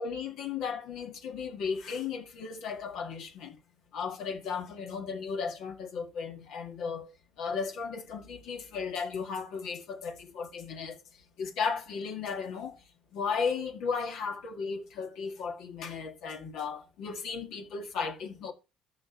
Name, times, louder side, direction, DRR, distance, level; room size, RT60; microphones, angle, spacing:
voice 1, 0.0-3.6 3.9-7.1 7.4-11.0 11.4-12.8 13.1-18.5, left 5 dB, 70° left, 2.1 m, -35 dB
13.0 x 5.6 x 4.1 m
hypercardioid pair, 65°, 0 cm